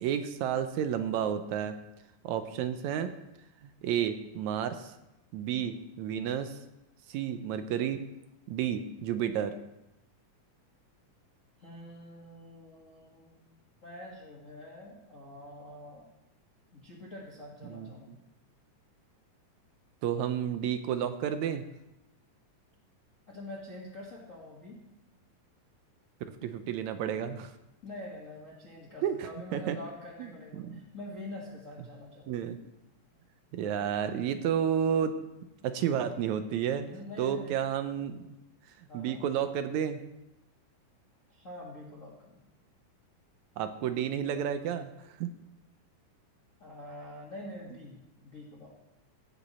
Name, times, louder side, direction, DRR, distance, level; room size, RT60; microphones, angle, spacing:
voice 1, 0.0-1.8 2.2-3.1 3.8-4.9 5.3-6.6 7.1-8.0 8.5-9.5 17.7-17.9 20.0-21.6 26.4-27.5 29.0-29.1 29.5-29.8 30.2-30.3 30.5-30.7 32.3-32.6 33.5-35.2 35.6-36.9 37.2-38.2 38.8-40.0 43.6-45.3, right 9 dB, 75° right, 9 dB, 1.8 m, -31 dB
voice 2, 11.6-13.5 13.8-16.1 16.7-18.2 23.3-24.8 27.8-32.4 36.8-37.6 38.9-39.2 41.3-42.4 46.6-48.8, left 1 dB, 30° left, -5 dB, 1.6 m, -45 dB
16.0 x 7.2 x 4.2 m, 0.90 s
omnidirectional pair, 3.7 m